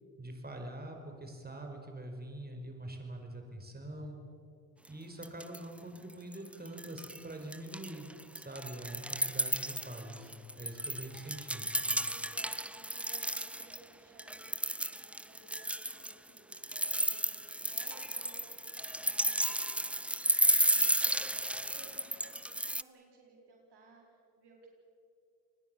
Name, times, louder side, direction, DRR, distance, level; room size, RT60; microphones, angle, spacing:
voice 1, 0.2-4.2 4.9-8.1 8.3-11.8, right 1 dB, 20° right, 4 dB, 5.5 m, -44 dB
sound 1, 4.8-4.9 5.2-5.8 6.1-7.2 7.5-13.8 14.2-22.8, right 1 dB, 5° right, 0.6 m, -33 dB
voice 2, 11.9-14.6 14.9-18.7 18.9-19.8 20.7-24.7, right 3 dB, 60° right, 0 dB, 5.1 m, -59 dB
28.5 x 20.5 x 7.2 m, 2.4 s
hypercardioid pair, 50°, 45 cm